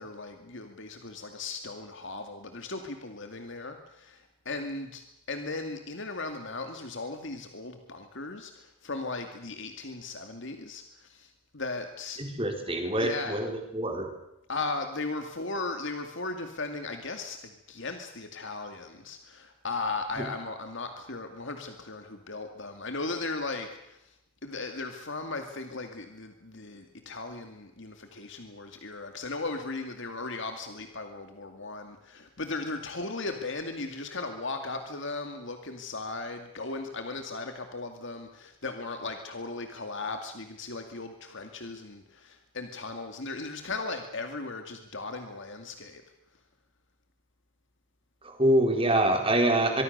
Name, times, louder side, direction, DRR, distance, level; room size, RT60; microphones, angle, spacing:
voice 1, 0.0-12.2 13.0-13.4 14.5-24.1 24.4-46.0, left 3 dB, 55° left, 6 dB, 2.3 m, -37 dB
voice 2, 12.2-14.1 48.2-49.8, right 1 dB, 25° right, 4 dB, 4.3 m, -25 dB
24.5 x 24.0 x 6.7 m, 0.85 s
head